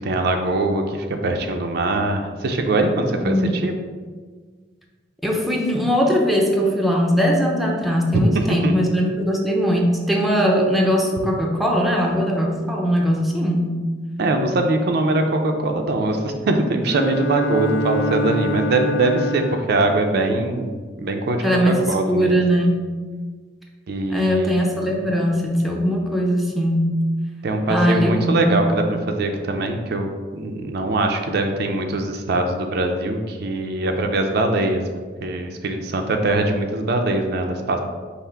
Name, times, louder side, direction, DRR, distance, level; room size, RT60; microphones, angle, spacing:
voice 1, 0.0-3.7 8.3-8.7 14.2-22.4 23.9-24.9 27.4-34.8 35.2-37.8, right 2 dB, 60° right, 4 dB, 0.5 m, -22 dB
voice 2, 5.2-13.8 21.4-22.9 24.1-27.0 27.7-28.5, equal, ahead, -1 dB, 0.5 m, -20 dB
Bowed string instrument, 16.8-19.9, equal, 75° left, 0.4 m, -26 dB
5.6 x 2.0 x 4.4 m, 1.5 s
head